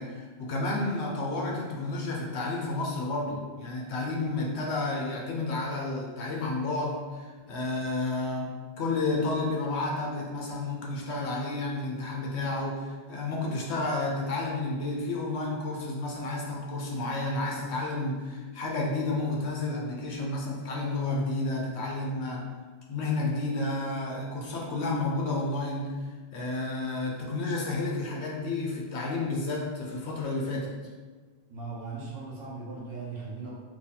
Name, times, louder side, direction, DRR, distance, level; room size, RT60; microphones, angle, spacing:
voice 1, 0.0-22.5 22.9-25.9 26.3-30.7, left 2 dB, 85° left, -2 dB, 1.0 m, -31 dB
voice 2, 31.5-33.5, right 4 dB, 65° right, -6 dB, 1.2 m, -38 dB
2.8 x 2.7 x 3.9 m, 1.4 s
omnidirectional pair, 1.1 m